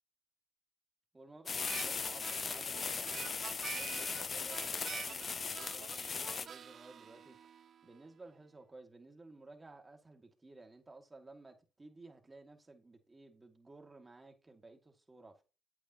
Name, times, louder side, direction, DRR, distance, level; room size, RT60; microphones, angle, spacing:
voice 1, 1.1-7.4 7.8-15.4, right 2 dB, 25° right, 1.9 m, -55 dB
sound 1, 1.5-6.5, left 5 dB, 45° left, 0.5 m, -38 dB
Harmonica, 1.6-8.0, right 8 dB, 60° right, 0.3 m, -48 dB
8.4 x 8.3 x 2.8 m
supercardioid pair, 65°, 0 cm